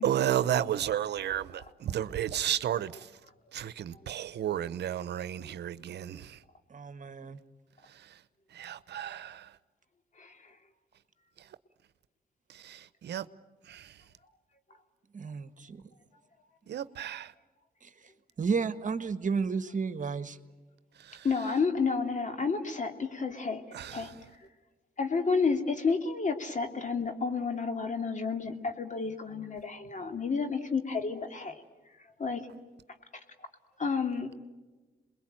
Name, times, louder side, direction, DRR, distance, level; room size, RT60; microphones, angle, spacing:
voice 1, 0.0-3.2 3.5-6.4 7.8-8.2 8.5-9.6 11.4-11.6 12.5-13.3 13.6-14.0 16.7-17.3 21.0-21.3 23.7-24.2, right 10 dB, 75° right, 0.9 m, -33 dB
voice 2, 6.7-7.4 15.1-15.8 17.8-17.9 18.4-20.4, right 5 dB, 50° right, 1.4 m, -32 dB
voice 3, 10.2-10.5 21.2-24.1 25.0-31.6 32.2-32.4 33.8-34.3, left 4 dB, 45° left, 2.9 m, -31 dB
28.0 x 22.0 x 9.0 m
cardioid pair, 65°, 17 cm